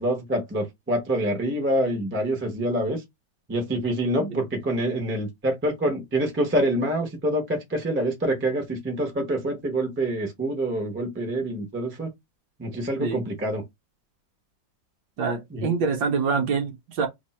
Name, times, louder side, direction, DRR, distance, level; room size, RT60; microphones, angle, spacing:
voice 1, 0.0-3.0 3.5-12.1 12.6-13.6 15.5-15.7, right 1 dB, 20° right, 0.3 m, -26 dB
voice 2, 15.2-17.1, right 5 dB, 70° right, 1.3 m, -26 dB
3.4 x 2.0 x 4.2 m
omnidirectional pair, 2.0 m